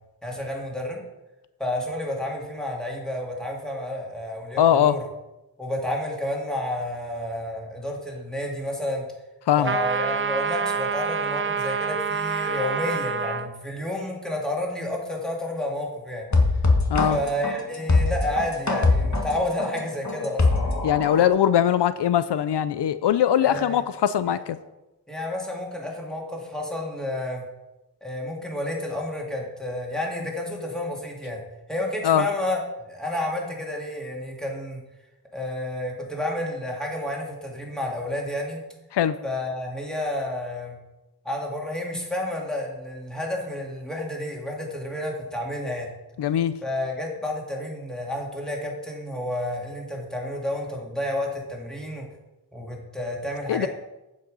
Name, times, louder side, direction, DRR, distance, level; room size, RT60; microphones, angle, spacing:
voice 1, 0.2-1.0 1.6-5.0 5.6-9.0 9.6-16.3 17.1-20.8 23.4-23.8 24.2-24.4 25.1-27.4 28.0-31.4 31.7-32.6 32.9-34.8 35.3-38.6 39.2-40.8 41.2-45.9 46.6-52.1 52.5-53.7, left 1 dB, ahead, -2 dB, 2.7 m, -30 dB
voice 2, 4.6-5.0 9.5-9.8 16.9-17.2 20.8-24.6 32.0-32.3 38.9-39.2 46.2-46.6 53.5-53.7, left 10 dB, 90° left, 15 dB, 0.5 m, -21 dB
sound 1, 9.6-13.5, right 5 dB, 30° right, 0.6 m, -27 dB
sound 2, 16.3-21.3, left 3 dB, 45° left, 1.7 m, -21 dB
8.9 x 7.5 x 5.4 m, 1.0 s
wide cardioid pair, 60°, 40 cm